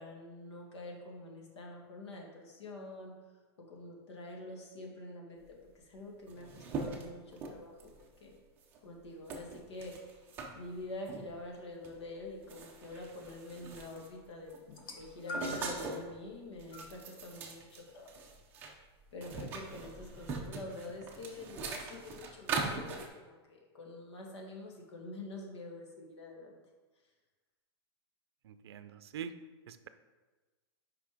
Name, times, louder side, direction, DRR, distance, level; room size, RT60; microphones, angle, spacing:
voice 1, 0.0-3.1 3.6-7.9 8.2-8.3 8.8-10.3 10.5-14.7 15.0-18.1 19.1-26.6, left 2 dB, 85° left, 0 dB, 1.9 m, -46 dB
sound 1, 5.8-5.9 6.1-8.1 8.6-8.8 9.3-10.5 11.1-11.3 11.8-12.0 12.3-14.2 14.5-16.1 16.5-18.7 19.0-23.1, right 4 dB, 15° right, 0.5 m, -41 dB
sound 2, 14.7-15.8 16.7-16.9 17.9-18.0, left 3 dB, 55° left, 1.0 m, -43 dB
voice 2, 28.4-29.3 29.7-29.9, right 8 dB, 65° right, 11 dB, 0.5 m, -44 dB
5.9 x 5.1 x 5.1 m, 1.3 s
supercardioid pair, 180°, 14 cm